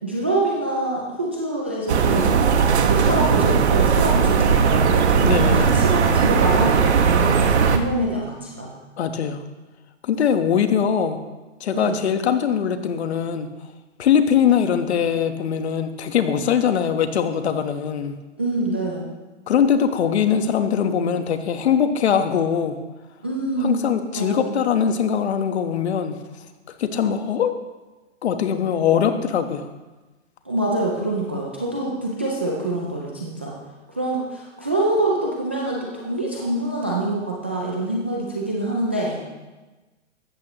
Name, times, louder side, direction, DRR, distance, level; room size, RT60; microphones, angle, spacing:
voice 1, 0.0-2.3 2.8-8.7 11.7-12.0 18.4-19.0 23.2-24.6 30.4-33.6 33.9-39.2, right 1 dB, 10° right, -4 dB, 0.3 m, -25 dB
sound 1, 1.9-7.8, right 6 dB, 60° right, 1.5 m, -18 dB
voice 2, 5.2-5.7 9.0-9.4 10.0-11.2 11.6-13.5 14.0-18.1 19.5-22.8 23.6-26.2 26.8-27.5 28.2-29.7, left 8 dB, 60° left, 8 dB, 1.3 m, -21 dB
15.5 x 13.5 x 3.0 m, 1.2 s
hypercardioid pair, 145°, 38 cm